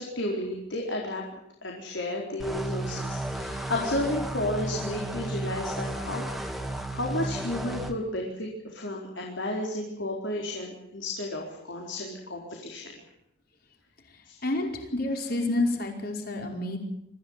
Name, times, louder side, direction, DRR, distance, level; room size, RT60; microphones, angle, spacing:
voice 1, 0.0-6.2 6.6-13.0 14.3-14.4, left 1 dB, 80° left, -1 dB, 4.6 m, -33 dB
sound 1, 2.4-7.9, right 1 dB, ahead, 2.2 m, -33 dB
voice 2, 14.4-16.8, left 2 dB, 55° left, 2 dB, 5.2 m, -29 dB
25.0 x 15.5 x 9.8 m, 0.81 s
head